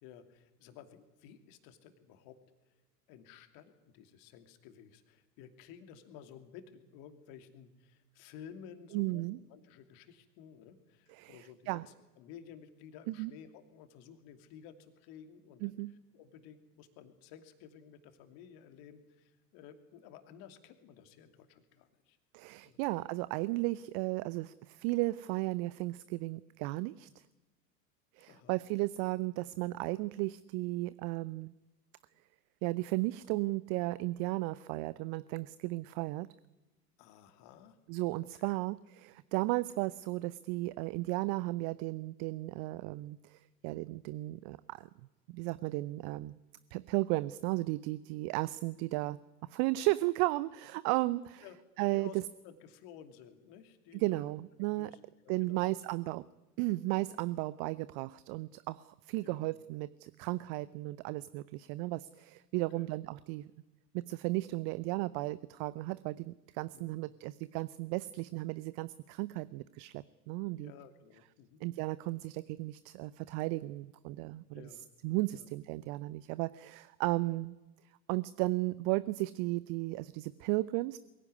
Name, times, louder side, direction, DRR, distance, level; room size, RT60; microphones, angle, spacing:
voice 1, 0.0-2.8 3.1-22.2 22.6-22.8 28.3-28.6 37.0-37.8 38.4-38.5 51.4-51.6 51.9-54.3 54.8-55.7 59.2-59.5 62.6-62.9 66.7-67.0 70.5-71.6 74.5-74.9 75.3-75.5, left 8 dB, 50° left, 8 dB, 2.8 m, -54 dB
voice 2, 8.9-9.4 11.2-11.9 13.1-13.3 15.6-15.9 22.3-27.2 28.2-31.5 32.6-36.3 37.9-44.9 45.3-46.4 46.7-49.2 49.5-51.4 51.8-52.1 53.9-54.9 55.3-56.3 56.6-63.5 63.9-70.7 71.6-74.7 75.0-77.6 78.1-81.0, right 20 dB, 40° right, 17 dB, 0.7 m, -35 dB
22.5 x 16.0 x 9.7 m, 1.1 s
figure-of-eight pair, 85°, 48 cm